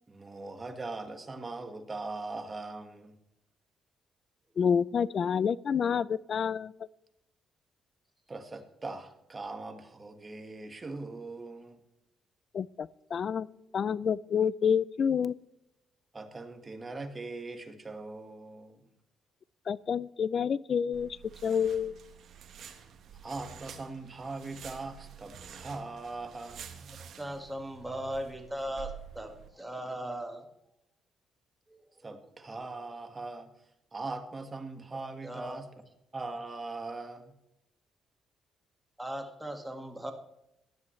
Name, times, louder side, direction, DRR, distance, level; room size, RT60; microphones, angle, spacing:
voice 1, 0.1-3.2 8.3-11.8 16.1-18.8 23.2-26.8 32.0-33.5 33.9-35.7 36.1-37.3, right 3 dB, 25° right, 7 dB, 1.7 m, -40 dB
voice 2, 4.6-6.7 12.5-13.5 13.7-15.3 19.7-21.2 21.4-21.9, left 7 dB, 50° left, 20 dB, 0.4 m, -28 dB
sound 1, 20.9-29.5, right 8 dB, 65° right, 1.4 m, -49 dB
voice 3, 26.8-30.5 31.7-32.1 35.2-35.8 39.0-40.1, equal, 5° right, 4 dB, 1.8 m, -39 dB
16.5 x 11.0 x 3.2 m, 0.82 s
cardioid pair, 90°, 0 cm